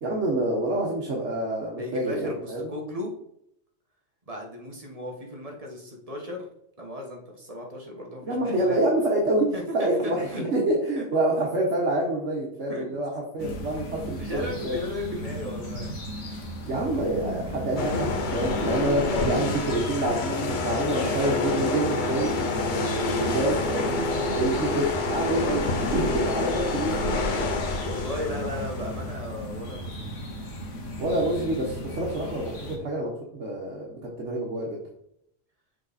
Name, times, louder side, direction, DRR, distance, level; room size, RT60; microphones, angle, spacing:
voice 1, 0.0-2.7 8.2-14.8 16.6-23.9 24.4-25.7 25.9-27.0 31.0-34.8, right 1 dB, 65° right, -3 dB, 1.5 m, -27 dB
voice 2, 1.8-3.1 4.3-6.5 6.8-8.8 9.5-10.4 11.0-11.2 12.7-12.9 14.1-16.0 18.6-18.7 24.0-24.5 26.8-27.1 27.5-30.1, left 1 dB, 30° right, 0 dB, 1.4 m, -36 dB
sound 1, 13.4-32.8, equal, 75° left, 1.6 m, -35 dB
sound 2, 17.8-29.1, left 3 dB, 45° left, 0.7 m, -28 dB
6.4 x 3.9 x 4.1 m, 0.73 s
omnidirectional pair, 1.3 m